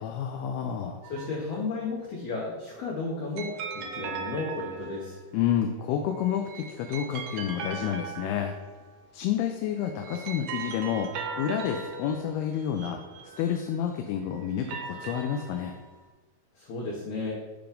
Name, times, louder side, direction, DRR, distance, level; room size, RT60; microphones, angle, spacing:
voice 1, 0.0-1.0 5.3-8.5 9.1-13.0 13.4-15.7, left 9 dB, 90° left, 4 dB, 2.5 m, -29 dB
sound 1, 1.0-1.8 3.4-5.3 6.3-9.0 9.8-13.9 14.5-16.0, right 5 dB, 80° right, 2.2 m, -39 dB
voice 2, 1.1-5.2 16.6-17.3, left 3 dB, 75° left, -3 dB, 1.8 m, -33 dB
6.9 x 3.4 x 5.1 m, 1.2 s
omnidirectional pair, 4.5 m